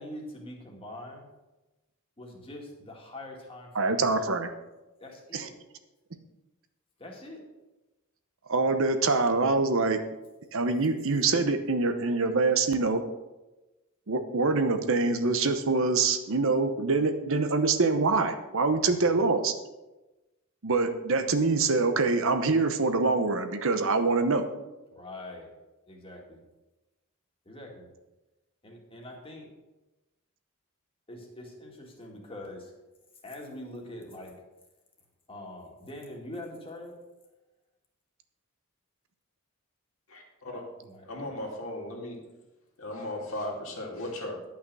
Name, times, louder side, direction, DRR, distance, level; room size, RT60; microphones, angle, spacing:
voice 1, 0.0-1.3 2.2-4.3 5.0-5.5 7.0-7.5 18.7-19.3 24.9-25.6 25.9-26.4 27.5-27.9 28.6-29.5 31.1-32.8 33.2-34.4 35.3-37.0 40.8-41.4, left 1 dB, 25° left, -1 dB, 2.2 m, -44 dB
voice 2, 3.7-4.5 5.3-5.5 8.5-10.0 10.5-13.0 14.1-19.5 20.6-24.5, right 3 dB, 65° right, 8 dB, 0.9 m, -25 dB
voice 3, 40.1-40.6 41.0-42.2 42.8-44.4, left 1 dB, 70° left, -1 dB, 2.6 m, -36 dB
11.0 x 5.9 x 6.3 m, 1.1 s
head